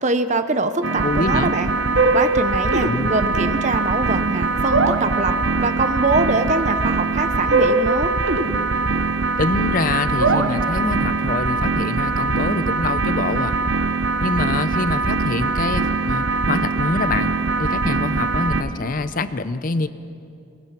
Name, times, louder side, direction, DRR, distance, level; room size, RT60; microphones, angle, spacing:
voice 1, 0.0-1.7 2.1-8.1, right 3 dB, 35° right, 10 dB, 0.8 m, -23 dB
rythmn with slide, 0.8-18.6, right 3 dB, 65° right, 1.0 m, -21 dB
voice 2, 1.0-1.5 2.7-3.2 9.4-13.6 14.2-17.3 17.6-19.9, left 3 dB, 45° left, 13 dB, 0.6 m, -25 dB
22.5 x 19.5 x 5.9 m, 2.5 s
head